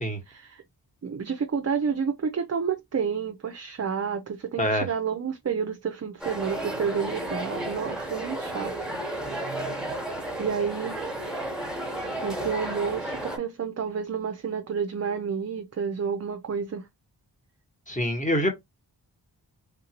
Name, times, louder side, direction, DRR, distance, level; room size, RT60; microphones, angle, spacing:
voice 1, 0.3-0.6 1.0-8.7 9.0-9.4 10.4-11.2 11.8-11.9 12.2-16.9, right 6 dB, 35° right, 0.5 m, -30 dB
sound 1, 6.2-13.4, right 1 dB, ahead, 1.3 m, -33 dB
voice 2, 17.9-18.5, equal, 15° left, 1.5 m, -25 dB
3.6 x 2.6 x 2.9 m
cardioid pair, 60°, 43 cm